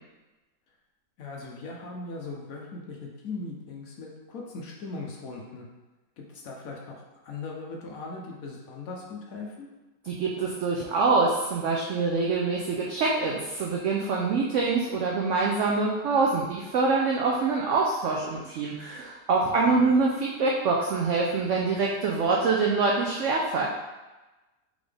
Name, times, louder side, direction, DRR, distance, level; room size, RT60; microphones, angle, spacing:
voice 1, 1.2-5.7 6.2-9.7 19.4-19.9, left 3 dB, 65° left, -1 dB, 1.0 m, -39 dB
voice 2, 10.0-23.7, right 4 dB, 85° right, -2 dB, 0.6 m, -25 dB
3.8 x 3.6 x 3.3 m, 1.1 s
omnidirectional pair, 1.8 m